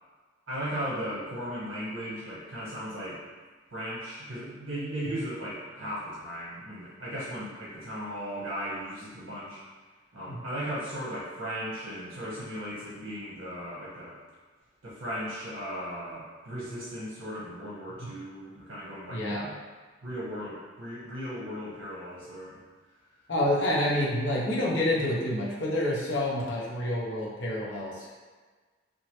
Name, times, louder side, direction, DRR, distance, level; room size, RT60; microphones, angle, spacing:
voice 1, 0.5-3.2 3.7-9.6 10.1-14.2 14.8-19.6 20.0-22.6, equal, 65° right, -8 dB, 0.8 m, -37 dB
voice 2, 19.1-19.4 23.3-28.2, left 1 dB, 60° left, -5 dB, 0.6 m, -28 dB
3.0 x 2.3 x 2.8 m, 1.4 s
head